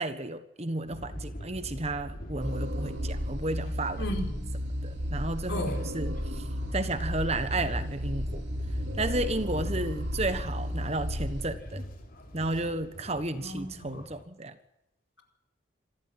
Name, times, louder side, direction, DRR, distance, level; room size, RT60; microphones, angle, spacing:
voice 1, 0.0-4.1 4.8-6.4 6.7-8.4 9.0-11.8 12.3-14.5, right 2 dB, 30° right, 11 dB, 1.4 m, -32 dB
sound 1, 0.9-14.2, equal, 45° left, 3.4 m, -43 dB
sound 2, 2.4-11.5, equal, 65° right, 2.6 m, -33 dB
voice 2, 4.0-4.4 5.5-5.8 13.4-14.0, equal, 65° left, 3 dB, 4.9 m, -35 dB
26.5 x 14.0 x 9.7 m, 0.84 s
head